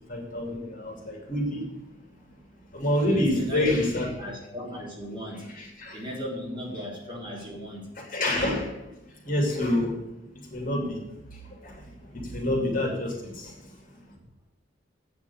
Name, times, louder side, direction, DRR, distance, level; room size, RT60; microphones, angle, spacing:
voice 1, 0.0-1.7 2.7-4.0 5.6-6.0 8.0-8.8 9.2-10.0 10.5-11.0 11.4-11.9 12.1-13.7, left 1 dB, 45° left, 0 dB, 2.7 m, -27 dB
voice 2, 3.1-3.8 4.2-5.5 5.9-7.9, equal, 25° right, -4 dB, 3.2 m, -36 dB
8.6 x 6.0 x 8.3 m, 0.90 s
head